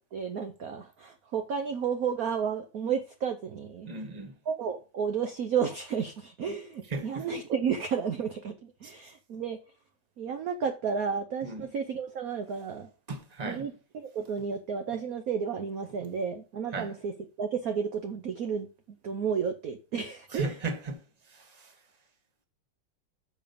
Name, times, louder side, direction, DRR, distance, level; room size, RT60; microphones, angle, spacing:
voice 1, 0.1-3.9 4.5-9.6 10.2-12.9 13.5-17.1 17.4-18.7 19.0-20.6, right 6 dB, 60° right, 1.0 m, -32 dB
voice 2, 3.8-4.3 6.9-7.3 8.8-8.9 11.4-11.7 13.1-13.7 16.7-16.9 20.3-21.0 21.3-21.7, right 3 dB, 20° right, 1.2 m, -36 dB
6.7 x 5.4 x 7.0 m
omnidirectional pair, 2.4 m